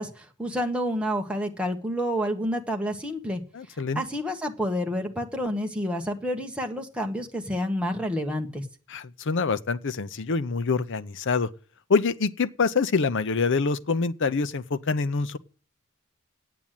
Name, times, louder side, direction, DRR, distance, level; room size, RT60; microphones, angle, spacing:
voice 1, 0.0-3.4 3.9-8.6, equal, 5° right, 1.3 m, -29 dB
voice 2, 3.5-4.0 8.9-11.5 11.9-15.4, left 4 dB, 60° left, 0.7 m, -25 dB
9.1 x 8.5 x 9.0 m
head